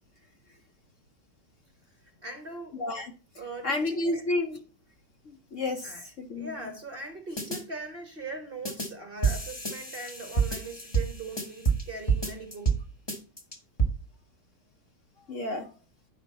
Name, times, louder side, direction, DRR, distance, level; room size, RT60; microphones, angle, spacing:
voice 1, 2.2-2.8 3.4-4.3 5.8-12.8, right 2 dB, 40° right, 0.9 m, -40 dB
voice 2, 2.8-3.1 3.6-4.6 5.5-5.9 6.2-6.5 15.3-15.7, left 2 dB, 55° left, 1.0 m, -30 dB
sound 1, 7.4-7.6 8.6-8.9 9.2-11.8 12.1-12.8 13.1-13.9, right 5 dB, 15° left, 1.1 m, -27 dB
9.8 x 5.0 x 4.0 m
omnidirectional pair, 1.9 m